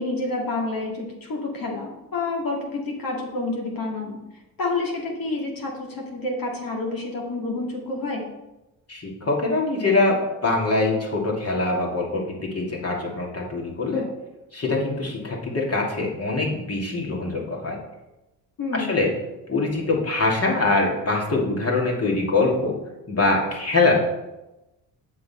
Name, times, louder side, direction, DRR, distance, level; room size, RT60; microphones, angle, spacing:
voice 1, 0.0-4.2 4.6-8.2 18.6-19.0, left 2 dB, 50° left, -2 dB, 2.3 m, -28 dB
voice 2, 8.9-12.2 12.5-14.0 14.5-17.8 18.7-19.1 19.5-22.7 23.1-24.0, left 3 dB, 35° left, -1 dB, 2.6 m, -23 dB
7.4 x 6.2 x 4.4 m, 0.98 s
hypercardioid pair, 50°, 43 cm